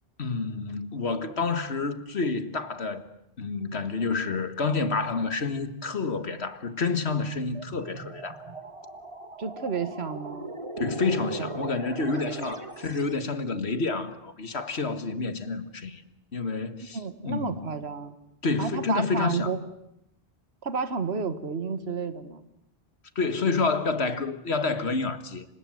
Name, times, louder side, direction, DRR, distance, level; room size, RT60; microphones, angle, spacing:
voice 1, 0.2-3.0 3.4-8.4 10.8-16.0 16.3-17.0 17.2-17.5 18.4-19.5 23.2-25.5, left 4 dB, 75° left, 1.9 m, -29 dB
sound 1, 7.4-13.2, right 3 dB, 30° right, 1.7 m, -39 dB
voice 2, 9.4-10.5 11.0-11.7 16.9-18.2 18.6-19.6 20.6-22.5, right 5 dB, 70° right, 1.8 m, -31 dB
29.5 x 25.5 x 7.8 m
omnidirectional pair, 1.1 m